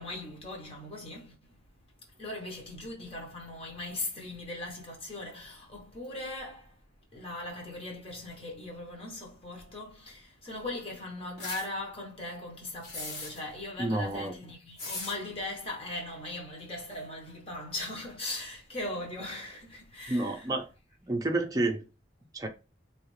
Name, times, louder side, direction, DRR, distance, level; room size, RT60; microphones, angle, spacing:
voice 1, 0.0-6.8 7.1-20.5, left 2 dB, 30° left, 1.0 m, -39 dB
sound 1, 11.4-11.7 12.8-13.4 14.8-15.2, left 2 dB, 60° left, 1.4 m, -38 dB
voice 2, 13.8-14.3 20.1-20.7 21.0-21.8 22.3-22.5, right 2 dB, 20° right, 0.5 m, -29 dB
3.2 x 2.4 x 3.1 m
head